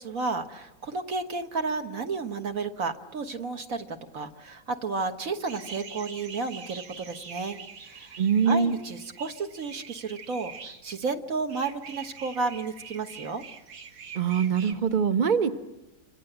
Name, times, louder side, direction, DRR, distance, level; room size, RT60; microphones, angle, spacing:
voice 1, 0.0-8.2 8.4-10.5 10.8-13.4, right 4 dB, 50° right, 7 dB, 1.7 m, -32 dB
sound 1, 5.4-10.8 11.5-14.7, right 6 dB, 90° right, 2.6 m, -45 dB
voice 2, 8.2-8.8 14.1-15.5, right 6 dB, 35° right, 8 dB, 1.0 m, -23 dB
27.5 x 26.0 x 8.0 m, 1.0 s
omnidirectional pair, 1.9 m